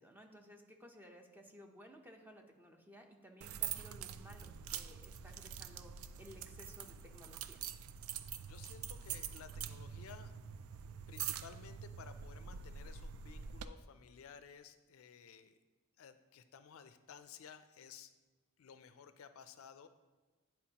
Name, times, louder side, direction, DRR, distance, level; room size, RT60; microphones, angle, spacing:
voice 1, 0.0-7.6, equal, 10° right, 3 dB, 0.6 m, -57 dB
sound 1, 3.4-13.7, right 8 dB, 75° right, 0.3 m, -45 dB
voice 2, 8.4-10.3 11.1-15.5 16.0-18.1 18.6-19.9, left 7 dB, 70° left, 10 dB, 0.4 m, -55 dB
10.5 x 4.4 x 2.9 m, 1.3 s
head